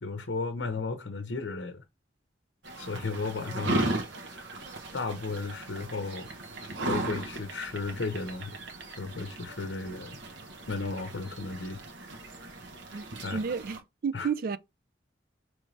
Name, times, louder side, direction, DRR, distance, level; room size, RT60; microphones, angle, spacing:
voice 1, 0.0-1.8 2.8-3.8 4.9-6.3 6.9-8.6 9.0-10.2 10.7-11.8 13.2-13.4 14.1-14.3, left 3 dB, 70° left, 0.7 m, -34 dB
sound 1, 2.6-13.8, right 1 dB, 70° right, 1.1 m, -37 dB
voice 2, 13.3-14.6, right 6 dB, 50° right, 0.3 m, -31 dB
5.2 x 3.2 x 3.2 m
head